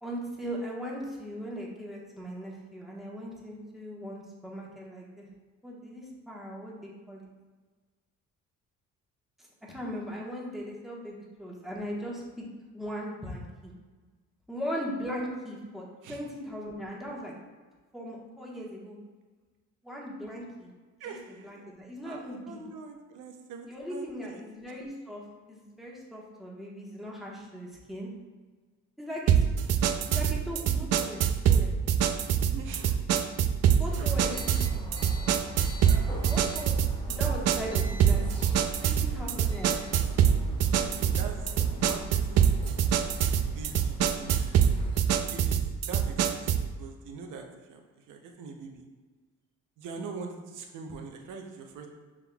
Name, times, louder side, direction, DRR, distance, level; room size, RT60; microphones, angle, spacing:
voice 1, 0.0-5.2 5.6-7.3 9.7-12.4 12.7-13.7 14.5-17.3 17.9-19.0 19.8-20.7 21.1-21.2 21.4-22.6 23.7-25.2 25.5-28.1 29.0-29.8 30.1-31.7 33.8-34.4 34.7-34.8 36.3-36.7 37.1-39.8, equal, ahead, -4 dB, 1.1 m, -39 dB
voice 2, 21.0-21.6 22.0-24.4 32.4-33.1 34.0-34.3 35.8-36.1 38.8-39.0 40.0-41.5 41.7-42.8 43.4-44.4 45.3-48.9 49.8-51.9, right 4 dB, 85° right, 3 dB, 0.7 m, -43 dB
sound 1, 29.3-46.7, right 8 dB, 55° right, 0.4 m, -25 dB
sound 2, 33.8-45.0, equal, 15° left, 1.2 m, -41 dB
5.9 x 3.7 x 2.3 m, 1.4 s
cardioid pair, 90°, 30 cm